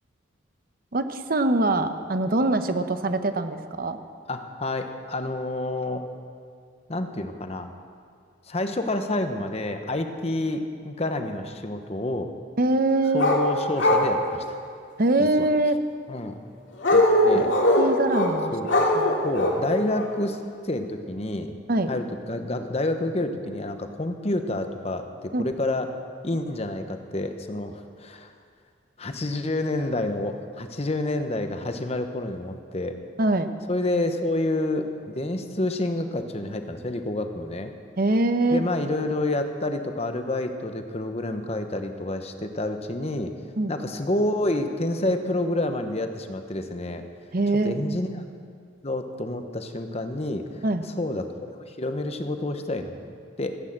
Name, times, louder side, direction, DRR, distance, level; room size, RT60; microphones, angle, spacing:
voice 1, 0.9-4.0 12.6-13.3 15.0-15.8 17.3-18.5 18.9-19.1 21.7-21.9 25.3-25.4 33.2-33.5 38.0-38.6 43.6-43.8 47.3-47.8 50.6-50.8, right 2 dB, 50° right, 9 dB, 0.8 m, -23 dB
voice 2, 4.3-6.0 6.9-7.7 8.5-12.3 13.1-14.6 15.2-15.3 16.1-16.4 16.9-17.5 18.5-18.7 19.2-20.4 20.6-21.6 21.9-25.9 26.2-28.3 29.0-33.0 33.7-37.7 38.5-43.3 43.7-47.0 47.6-48.2 48.8-50.6 51.0-53.6, left 1 dB, 35° left, 7 dB, 0.9 m, -28 dB
sound 1, 13.2-13.4 13.8-14.1 16.8-18.3 18.7-19.6 19.9-20.1, left 1 dB, 75° left, 2.6 m, -20 dB
16.0 x 9.1 x 7.5 m, 2.3 s
head